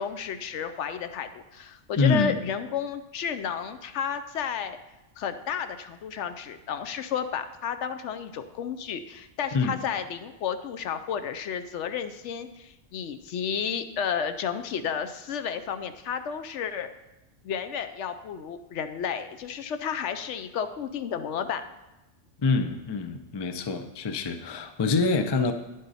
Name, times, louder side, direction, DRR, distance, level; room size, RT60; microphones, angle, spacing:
voice 1, 0.0-4.8 5.2-16.9 17.4-21.6, left 7 dB, 75° left, 10 dB, 0.9 m, -32 dB
voice 2, 2.0-2.4 9.5-9.8 22.4-25.5, left 4 dB, 35° left, 8 dB, 0.4 m, -25 dB
10.5 x 7.5 x 4.1 m, 1.0 s
omnidirectional pair, 1.3 m